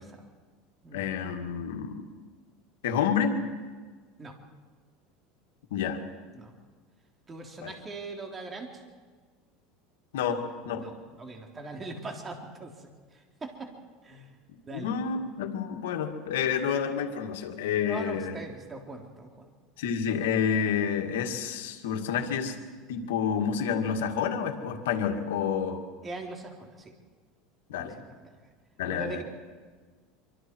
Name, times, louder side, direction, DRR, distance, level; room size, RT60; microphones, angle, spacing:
voice 1, 0.9-2.0 2.8-3.4 5.7-6.0 7.6-7.7 10.1-10.9 14.7-18.3 19.8-22.6 22.9-25.8 27.7-27.9 28.8-29.2, left 7 dB, 90° left, 4 dB, 2.2 m, -29 dB
voice 2, 7.3-8.8 10.8-13.7 14.0-14.3 14.7-14.9 17.9-19.5 26.0-26.9 27.7-28.4 28.8-29.2, right 3 dB, 20° right, 2 dB, 3.4 m, -41 dB
25.5 x 24.5 x 4.7 m, 1.5 s
supercardioid pair, 130°, 0 cm